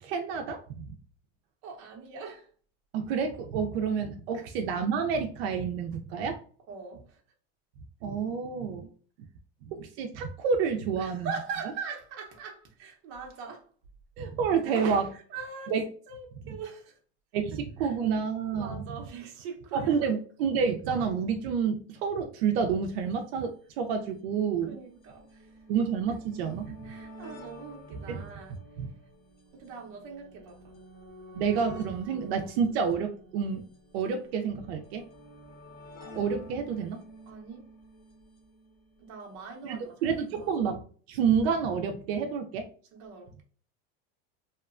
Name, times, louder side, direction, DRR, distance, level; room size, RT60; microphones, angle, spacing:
voice 1, 0.0-0.9 2.9-6.4 8.0-8.9 9.7-11.3 14.2-15.1 15.7-15.8 16.5-16.6 17.3-18.8 19.7-24.8 25.7-26.8 27.9-28.2 28.8-28.9 31.3-33.6 33.9-35.0 36.0-37.0 39.6-40.8 41.1-42.7, right 6 dB, 75° right, 0.5 m, -29 dB
voice 2, 1.6-2.5 4.3-4.4 6.7-7.2 11.0-13.6 14.6-14.8 15.1-15.7 16.1-16.9 17.5-17.9 18.5-20.1 24.6-25.5 26.8-28.6 29.5-30.8 37.3-37.7 39.0-40.5 42.9-43.4, right 5 dB, 40° right, 0.7 m, -42 dB
sound 1, 23.1-23.2 24.1-39.3 40.3-40.4 40.5-40.6, equal, 70° left, 1.0 m, -50 dB
2.8 x 2.1 x 2.4 m
supercardioid pair, 165°, 32 cm